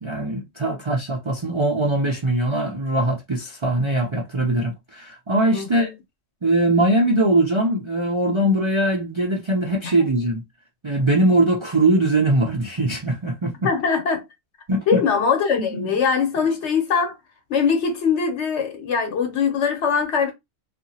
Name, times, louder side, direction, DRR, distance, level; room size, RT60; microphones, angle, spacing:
voice 1, 0.0-5.9 6.4-10.4 10.8-13.5 14.7-15.0 15.6-15.9, right 1 dB, 45° right, 0.4 m, -21 dB
voice 2, 5.5-5.9 9.8-9.9 13.6-14.2 14.9-17.1 17.5-20.3, left 6 dB, 65° left, 1.1 m, -22 dB
2.8 x 2.5 x 2.7 m
omnidirectional pair, 1.3 m